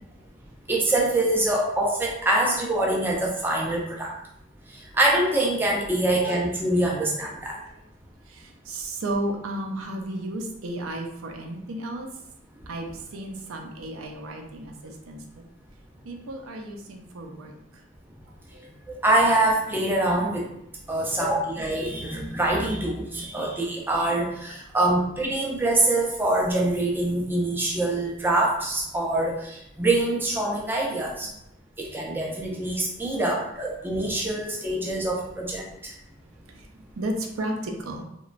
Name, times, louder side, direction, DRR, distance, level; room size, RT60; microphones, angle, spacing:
voice 1, 0.7-4.1 4.9-7.6 19.0-20.5 20.9-31.3 31.8-35.9, right 1 dB, 10° right, -2 dB, 0.3 m, -24 dB
voice 2, 8.3-12.1 12.7-15.2 16.0-17.8 18.5-18.7 31.2-31.4 36.5-38.0, right 1 dB, 85° right, 3 dB, 0.5 m, -34 dB
2.9 x 2.2 x 2.4 m, 0.79 s
head